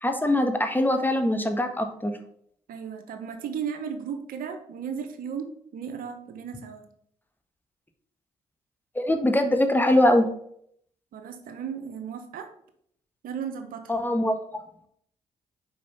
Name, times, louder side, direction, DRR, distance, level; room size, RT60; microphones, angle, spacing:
voice 1, 0.0-2.1 8.9-10.2 13.9-14.4, left 1 dB, 10° left, 6 dB, 1.4 m, -22 dB
voice 2, 2.7-6.9 11.1-12.5 13.2-14.0, right 7 dB, 70° right, 7 dB, 0.9 m, -35 dB
5.5 x 4.8 x 5.7 m, 0.68 s
hypercardioid pair, 45°, 15 cm